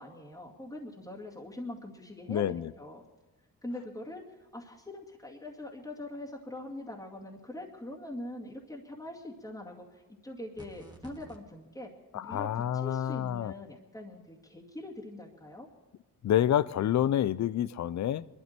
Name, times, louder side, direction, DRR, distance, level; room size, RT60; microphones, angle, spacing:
voice 1, 0.0-3.0 3.6-12.5 12.7-15.7, left 1 dB, 10° left, 2.3 m, -43 dB
voice 2, 2.3-2.7 12.1-13.5 16.2-18.3, left 11 dB, 50° left, 0.5 m, -28 dB
sound 1, 10.6-11.4, right 2 dB, 10° right, 2.1 m, -50 dB
21.5 x 12.5 x 4.5 m
cardioid pair, 75°, 36 cm